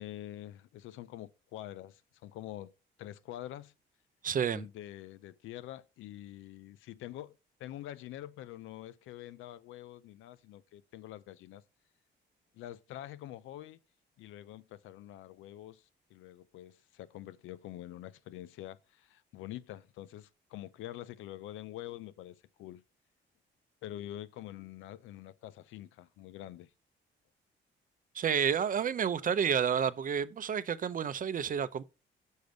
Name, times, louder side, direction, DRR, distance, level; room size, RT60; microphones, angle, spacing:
voice 1, 0.0-2.7 3.0-3.7 4.5-11.6 12.5-13.8 14.2-22.8 23.8-26.7, left 13 dB, 90° left, 0.6 m, -46 dB
voice 2, 4.2-4.7 28.1-31.8, right 7 dB, 45° right, 0.6 m, -30 dB
6.4 x 5.1 x 5.1 m
cardioid pair, 90°, 20 cm